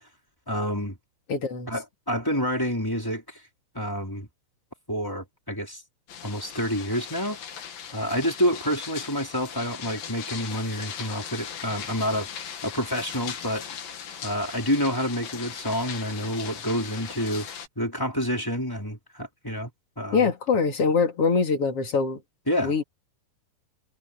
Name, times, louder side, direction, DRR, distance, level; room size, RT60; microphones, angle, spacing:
voice 1, 0.5-0.9 1.7-3.4 3.7-4.3 4.9-5.8 6.2-7.4 7.9-12.3 12.6-13.7 14.2-17.5 17.8-19.7 20.0-20.3 22.5-22.7, equal, 5° left, 4.1 m, -28 dB
voice 2, 1.3-1.7 20.1-22.2 22.6-22.8, left 5 dB, 40° left, 3.2 m, -23 dB
sound 1, 6.1-17.7, left 8 dB, 70° left, 3.9 m, -39 dB
omnidirectional pair, 4.3 m